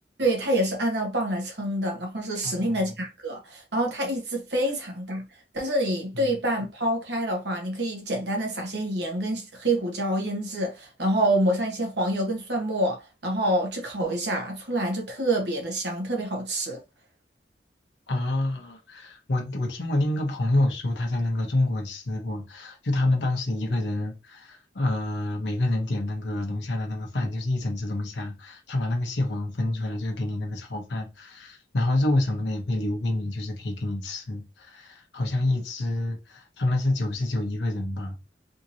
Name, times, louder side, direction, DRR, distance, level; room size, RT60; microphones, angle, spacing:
voice 1, 0.2-5.3 5.5-16.8, right 1 dB, 70° right, 1.2 m, -27 dB
voice 2, 2.4-2.8 6.1-6.3 18.1-38.2, left 1 dB, 85° left, 1.0 m, -27 dB
3.6 x 2.9 x 2.7 m
head